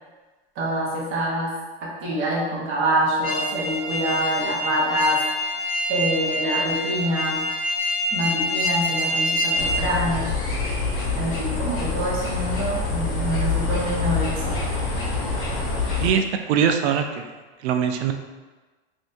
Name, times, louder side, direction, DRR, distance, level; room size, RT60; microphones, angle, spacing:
voice 1, 0.6-1.5 1.8-5.2 5.9-7.4 8.1-10.3 11.1-14.6, right 1 dB, 40° right, -5 dB, 1.0 m, -25 dB
sound 1, 3.2-9.8, equal, 15° left, 1.2 m, -26 dB
sound 2, 9.6-16.1, left 3 dB, 40° left, 0.8 m, -26 dB
voice 2, 16.0-17.3 17.6-18.1, right 7 dB, 85° right, 6 dB, 0.5 m, -22 dB
2.7 x 2.6 x 3.4 m, 1.3 s
supercardioid pair, 140°, 32 cm